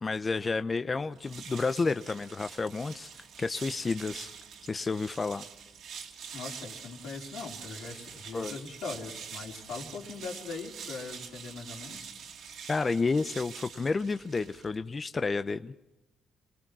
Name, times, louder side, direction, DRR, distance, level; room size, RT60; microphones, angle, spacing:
voice 1, 0.0-3.1 3.4-4.3 4.7-5.4 8.3-8.5 12.7-15.7, left 4 dB, 30° left, 10 dB, 0.7 m, -30 dB
sound 1, 1.1-14.8, right 7 dB, 75° right, 2.6 m, -45 dB
voice 2, 6.3-12.1, left 4 dB, 85° left, 0 dB, 4.0 m, -41 dB
27.0 x 20.5 x 6.1 m, 0.97 s
cardioid pair, 90°, 0 cm